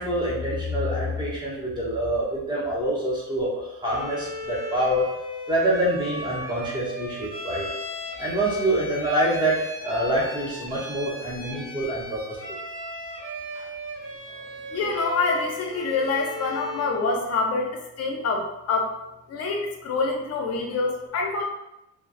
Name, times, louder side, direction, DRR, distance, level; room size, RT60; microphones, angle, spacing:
voice 1, 0.0-5.0 5.5-7.7 8.2-12.6 13.5-13.7 14.4-14.7, right 1 dB, 15° right, -6 dB, 0.7 m, -26 dB
Bowed string instrument, 3.8-17.0, left 1 dB, 45° right, 1.4 m, -37 dB
voice 2, 14.7-17.7 18.0-18.9 19.3-21.4, left 3 dB, 45° left, 1 dB, 0.5 m, -26 dB
3.1 x 2.1 x 2.5 m, 0.92 s
cardioid pair, 150°, 34 cm